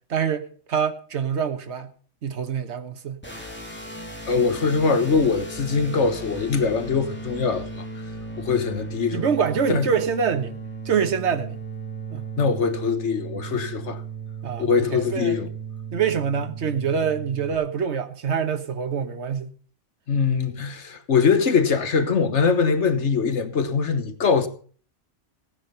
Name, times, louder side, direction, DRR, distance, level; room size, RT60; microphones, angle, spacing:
voice 1, 0.1-1.9 2.2-3.2 9.1-10.5 10.8-11.6 12.1-12.2 14.4-15.5 15.9-19.5, right 7 dB, 65° right, 1.4 m, -25 dB
sound 1, 3.2-17.6, right 4 dB, 10° left, 2.9 m, -36 dB
voice 2, 4.3-7.8 8.4-9.3 9.7-9.9 12.4-14.0 14.6-15.5 20.1-24.5, left 5 dB, 70° left, 1.5 m, -22 dB
15.5 x 9.8 x 5.5 m
omnidirectional pair, 1.2 m